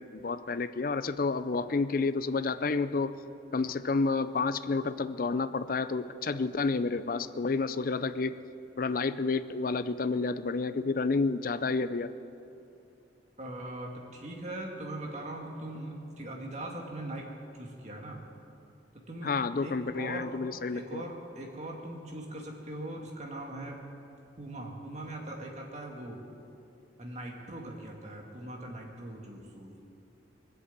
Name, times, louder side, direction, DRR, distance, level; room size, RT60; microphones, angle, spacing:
voice 1, 0.0-3.1 3.5-8.4 8.8-12.1 19.2-21.0, left 4 dB, 50° left, 13 dB, 0.5 m, -30 dB
voice 2, 13.4-18.2 18.9-19.3 19.6-20.3 20.7-23.8 24.4-26.2 27.0-29.7, right 1 dB, 40° right, 0 dB, 2.1 m, -41 dB
20.0 x 8.0 x 8.2 m, 2.8 s
head